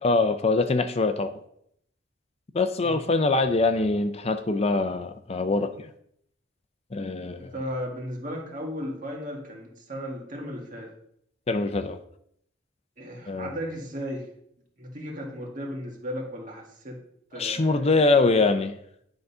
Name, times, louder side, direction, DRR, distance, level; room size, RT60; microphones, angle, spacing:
voice 1, 0.0-1.4 2.5-5.9 6.9-7.5 11.5-12.0 13.3-13.5 17.4-18.7, left 3 dB, 35° left, 9 dB, 0.5 m, -23 dB
voice 2, 7.4-10.9 13.0-14.3 14.8-17.0 17.3-18.6, equal, 45° right, 1 dB, 1.9 m, -36 dB
10.5 x 3.9 x 5.5 m, 0.70 s
head